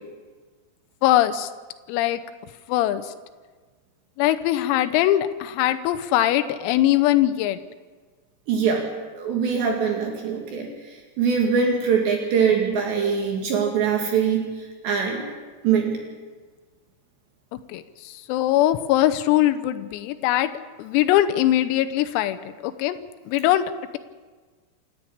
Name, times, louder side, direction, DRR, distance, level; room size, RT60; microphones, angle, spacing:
voice 1, 1.0-1.5 1.9-2.2 2.7-3.1 4.2-7.6 17.5-20.5 20.8-22.4 22.6-23.0 23.3-23.7, left 13 dB, 90° left, 9 dB, 3.6 m, -21 dB
voice 2, 8.5-8.9 9.2-10.7 11.2-14.4 14.8-15.2 15.6-15.9, right 6 dB, 65° right, 1 dB, 3.9 m, -22 dB
28.5 x 10.5 x 8.7 m, 1.4 s
omnidirectional pair, 6.0 m